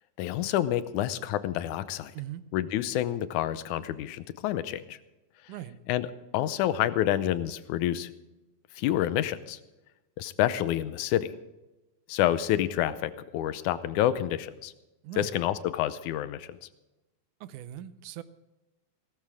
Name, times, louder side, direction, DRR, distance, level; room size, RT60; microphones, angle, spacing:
voice 1, 0.2-2.1 2.5-5.0 5.9-6.1 6.3-8.1 8.8-9.6 10.2-11.3 12.1-14.7 15.2-16.6, left 12 dB, 80° left, 14 dB, 2.1 m, -28 dB
voice 2, 5.5-5.8 15.0-15.4 17.4-18.2, right 12 dB, 85° right, 13 dB, 2.2 m, -40 dB
17.0 x 14.5 x 3.6 m, 1.0 s
omnidirectional pair, 3.6 m